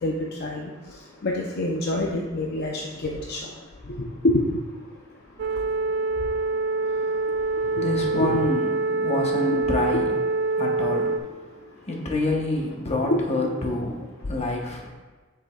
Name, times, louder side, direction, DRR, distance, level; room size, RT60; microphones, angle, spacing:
voice 1, 1.2-3.4 4.0-4.4 7.8-7.9 8.2-8.4 13.4-13.6, left 1 dB, 50° left, -1 dB, 0.6 m, -26 dB
sound 1, 5.4-11.2, right 3 dB, 55° right, 0.3 m, -25 dB
voice 2, 6.8-7.2 7.7-10.2 10.6-11.2 11.9-14.9, left 2 dB, 30° left, 0 dB, 1.0 m, -27 dB
7.7 x 6.7 x 2.3 m, 1.3 s
head